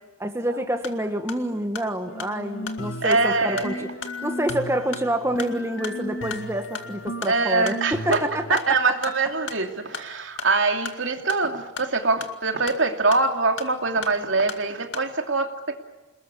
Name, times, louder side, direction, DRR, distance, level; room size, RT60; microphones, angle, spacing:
voice 1, 0.2-3.9 4.2-8.9, right 1 dB, 15° right, 6 dB, 1.6 m, -27 dB
sound 1, 0.7-15.1, left 5 dB, 65° left, 2.4 m, -40 dB
sound 2, 2.1-8.5, left 1 dB, 85° left, 2.5 m, -35 dB
voice 2, 3.0-3.8 7.3-8.2 8.5-15.8, right 3 dB, 75° right, 5 dB, 2.8 m, -23 dB
28.5 x 21.0 x 9.9 m, 1.1 s
head